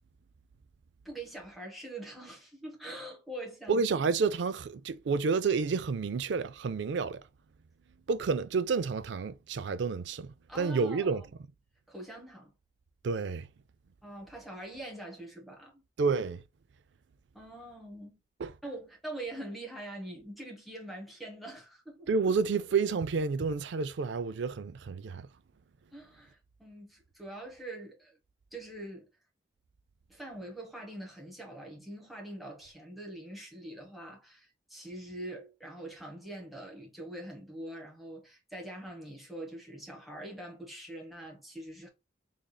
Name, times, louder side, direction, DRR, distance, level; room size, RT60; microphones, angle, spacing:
voice 1, 1.0-3.8 10.5-11.2 11.9-12.5 14.0-15.8 17.3-18.2 18.6-22.1 25.9-28.2 28.5-29.1 30.1-41.9, right 1 dB, ahead, 1.3 m, -44 dB
voice 2, 3.7-7.2 8.1-11.2 13.0-13.5 16.0-16.4 18.4-18.6 22.1-25.3, right 5 dB, 65° right, 0.4 m, -30 dB
3.7 x 3.4 x 2.3 m
head